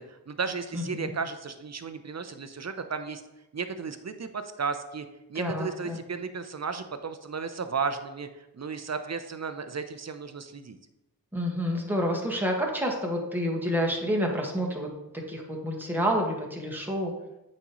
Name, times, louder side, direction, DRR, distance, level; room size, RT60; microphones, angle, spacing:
voice 1, 0.0-3.2 3.5-10.8, right 5 dB, 45° right, 9 dB, 0.8 m, -34 dB
voice 2, 0.7-1.1 5.3-6.0 11.3-14.9 15.3-17.1, equal, 5° right, 0 dB, 1.6 m, -29 dB
8.3 x 5.4 x 3.1 m, 0.94 s
cardioid pair, 40°, 38 cm